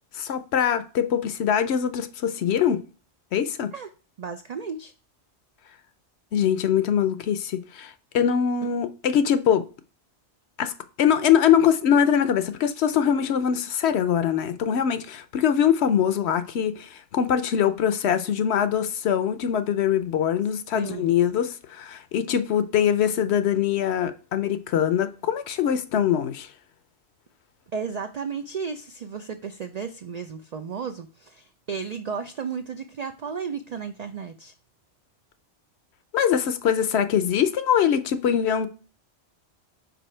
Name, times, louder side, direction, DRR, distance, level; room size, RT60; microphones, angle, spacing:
voice 1, 0.1-2.8 3.3-3.7 6.3-9.7 10.6-10.7 11.0-26.5 36.1-38.7, left 8 dB, 70° left, 0.8 m, -23 dB
voice 2, 4.2-4.9 20.7-21.1 27.7-34.5, right 6 dB, 70° right, 0.4 m, -33 dB
5.4 x 4.8 x 4.3 m
omnidirectional pair, 1.2 m